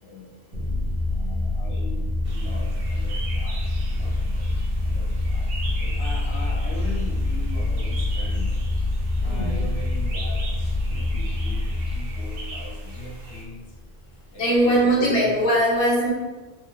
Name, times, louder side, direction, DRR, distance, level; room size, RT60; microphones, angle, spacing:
voice 1, 0.0-4.5 4.8-5.5 5.8-13.7 14.3-15.3, left 1 dB, 70° left, -5 dB, 1.0 m, -41 dB
sound 1, 0.5-13.4, left 2 dB, 40° right, 0.8 m, -26 dB
sound 2, 2.3-13.4, right 3 dB, 70° right, 0.8 m, -42 dB
voice 2, 9.2-9.6 14.4-16.1, right 1 dB, 40° left, -5 dB, 0.9 m, -20 dB
2.8 x 2.4 x 3.1 m, 1.3 s
omnidirectional pair, 1.0 m